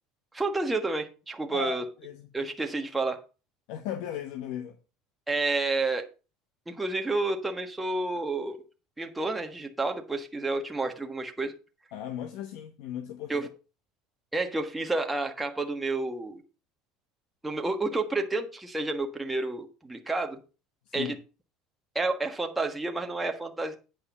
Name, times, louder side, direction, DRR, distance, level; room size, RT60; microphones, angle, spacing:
voice 1, 0.3-1.9 2.3-3.2 5.3-6.0 6.7-8.6 9.0-11.5 13.3-13.5 14.3-16.4 17.4-20.4 20.9-21.1 21.9-23.8, right 3 dB, 10° right, 1.4 m, -30 dB
voice 2, 1.5-2.3 3.7-4.8 11.9-13.3 20.9-21.2, left 10 dB, 70° left, 1.1 m, -36 dB
9.0 x 5.4 x 5.6 m
supercardioid pair, 135°, 0 cm